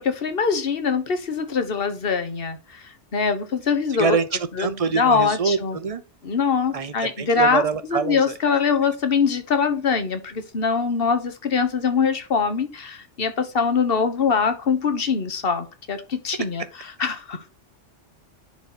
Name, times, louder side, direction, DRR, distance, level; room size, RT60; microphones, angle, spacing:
voice 1, 0.0-4.2 4.5-5.8 6.2-7.6 7.9-16.6 17.0-17.5, left 5 dB, 55° left, 1.3 m, -23 dB
voice 2, 4.0-6.0 6.7-8.3, right 5 dB, 40° right, 0.6 m, -25 dB
10.5 x 4.0 x 4.3 m
omnidirectional pair, 1.2 m